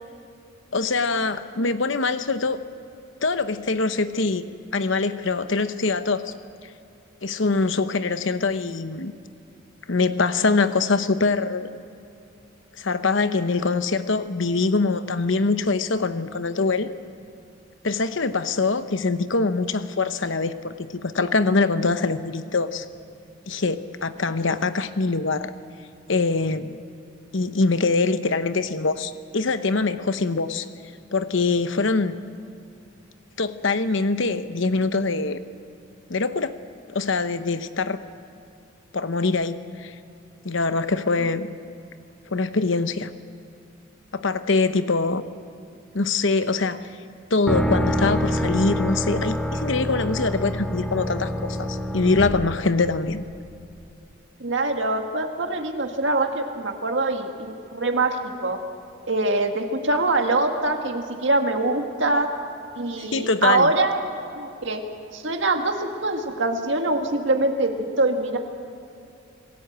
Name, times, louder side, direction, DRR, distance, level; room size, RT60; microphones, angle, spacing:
voice 1, 0.7-2.6 3.2-4.4 4.7-6.3 7.2-9.1 9.9-11.7 12.8-16.9 17.8-22.9 23.5-25.5 26.1-26.8 27.3-30.7 31.1-32.2 33.4-35.4 36.1-36.6 36.9-38.0 38.9-39.9 40.4-41.5 42.3-43.1 44.1-45.2 45.9-46.9 47.3-53.2 63.0-63.7, left 3 dB, 65° left, 11 dB, 0.9 m, -23 dB
sound 1, 47.5-53.4, equal, 5° left, 0.9 m, -26 dB
voice 2, 54.4-58.6 59.1-62.3 62.8-64.0 64.3-64.8 65.1-68.4, right 2 dB, 60° right, 4 dB, 1.9 m, -24 dB
26.5 x 16.0 x 8.1 m, 2.7 s
head